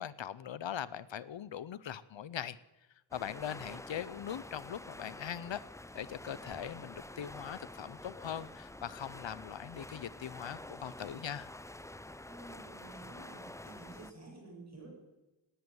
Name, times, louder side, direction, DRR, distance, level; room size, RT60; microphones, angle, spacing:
voice 1, 0.0-2.6 3.1-5.6 5.9-11.5, left 9 dB, 70° left, 18 dB, 0.6 m, -41 dB
sound 1, 3.1-14.1, left 1 dB, 5° left, 0.5 m, -48 dB
voice 2, 12.2-14.9, right 2 dB, 35° right, -2 dB, 7.4 m, -51 dB
18.0 x 9.5 x 7.8 m, 1.1 s
wide cardioid pair, 70°, 46 cm